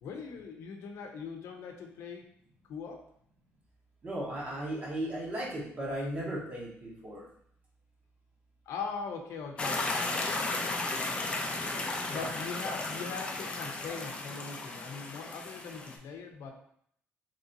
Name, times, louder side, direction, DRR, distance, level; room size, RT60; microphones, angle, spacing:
voice 1, 0.0-2.3 2.7-3.0 8.7-10.5 12.1-16.5, left 5 dB, 75° left, 4 dB, 0.6 m, -41 dB
voice 2, 4.0-7.3 12.1-12.3, right 1 dB, 30° right, -4 dB, 1.1 m, -36 dB
sound 1, 9.6-16.0, left 2 dB, 25° left, 0.4 m, -34 dB
3.0 x 2.7 x 3.9 m, 0.67 s
cardioid pair, 150°, 5 cm